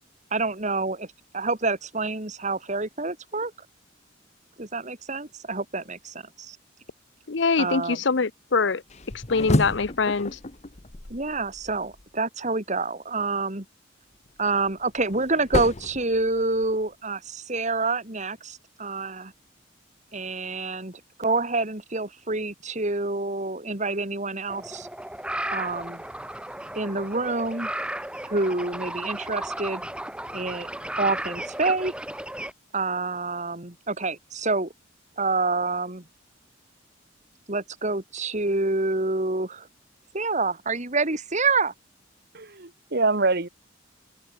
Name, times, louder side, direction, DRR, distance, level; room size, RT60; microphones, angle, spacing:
voice 1, 0.3-1.1 1.3-3.5 4.6-6.6 7.6-8.0 11.1-13.6 14.4-19.3 20.1-24.9 25.5-26.0 26.8-27.7 28.2-29.8 30.3-30.7 31.0-31.9 32.7-34.7 35.2-36.0 37.5-39.7 40.1-41.7, right 3 dB, 40° right, 2.8 m, -27 dB
voice 2, 7.3-8.8 9.3-10.4, left 4 dB, 65° left, 0.8 m, -23 dB
sound 1, 8.9-12.0 14.3-16.8, left 1 dB, 35° left, 1.2 m, -31 dB
sound 2, 24.5-32.5, right 1 dB, 5° right, 3.0 m, -34 dB
voice 3, 42.3-43.5, right 3 dB, 55° right, 1.7 m, -24 dB
head